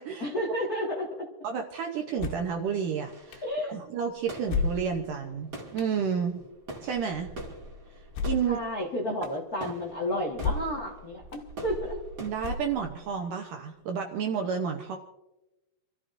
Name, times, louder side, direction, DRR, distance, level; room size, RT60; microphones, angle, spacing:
voice 1, 0.2-1.2 3.4-3.8 8.4-12.0, left 1 dB, 65° left, -3 dB, 0.9 m, -31 dB
voice 2, 1.4-3.4 3.7-6.4 6.8-7.3 8.2-8.6 12.2-15.0, right 7 dB, 75° right, 3 dB, 2.0 m, -31 dB
sound 1, 2.2-2.6 3.3-3.4 4.5-5.2 5.8-5.9 8.1-8.6 9.2-9.3 10.4-10.8 11.3-11.4 12.4-13.0, left 4 dB, 85° left, 3.2 m, -31 dB
sound 2, 3.0-13.2, right 1 dB, 40° right, 1.2 m, -45 dB
28.0 x 13.5 x 2.6 m, 1.0 s
omnidirectional pair, 4.8 m